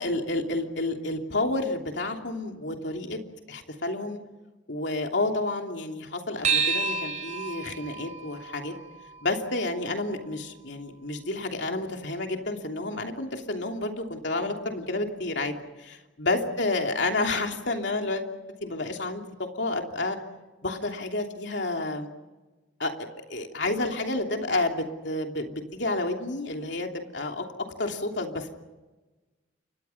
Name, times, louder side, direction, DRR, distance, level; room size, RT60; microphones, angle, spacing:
voice 1, 0.0-3.2 3.5-4.2 4.7-8.7 9.2-18.2 18.6-19.2 19.5-20.2 20.6-22.1 22.8-27.4 27.8-28.5, left 2 dB, 65° left, 3 dB, 3.0 m, -30 dB
sound 1, 6.4-11.2, right 5 dB, 40° right, 4.1 m, -32 dB
29.5 x 25.5 x 5.9 m, 1.2 s
head